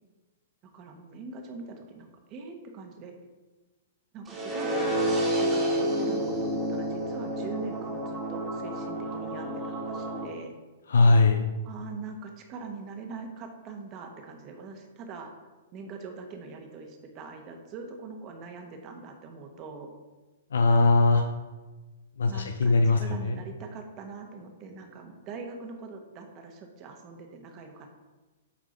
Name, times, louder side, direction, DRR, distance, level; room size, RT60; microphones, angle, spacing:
voice 1, 0.6-3.1 4.1-10.5 11.6-15.3 15.7-19.9 22.3-28.0, right 4 dB, 30° right, 4 dB, 1.0 m, -42 dB
sound 1, 4.3-10.2, right 1 dB, 15° right, 1.4 m, -29 dB
voice 2, 10.9-11.5 20.5-21.2 22.2-23.4, left 3 dB, 85° left, 6 dB, 0.5 m, -21 dB
8.6 x 3.6 x 3.9 m, 1.2 s
hypercardioid pair, 140°, 0 cm